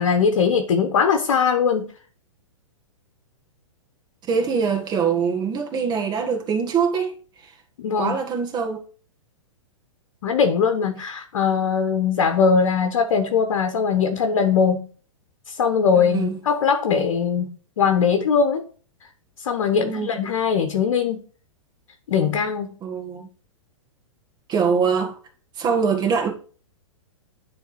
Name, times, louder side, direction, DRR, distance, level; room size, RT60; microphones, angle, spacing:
voice 1, 0.0-1.9 7.8-8.2 10.2-14.9 15.5-18.7 19.4-21.2 22.1-22.8, left 6 dB, 65° left, 1.1 m, -21 dB
voice 2, 4.3-7.1 7.4-7.5 8.0-8.8 15.9-16.4 19.7-20.1 22.8-23.3 24.5-25.1 25.6-26.3, right 6 dB, 25° right, 1.7 m, -23 dB
10.0 x 3.6 x 4.1 m
figure-of-eight pair, 110°, 17 cm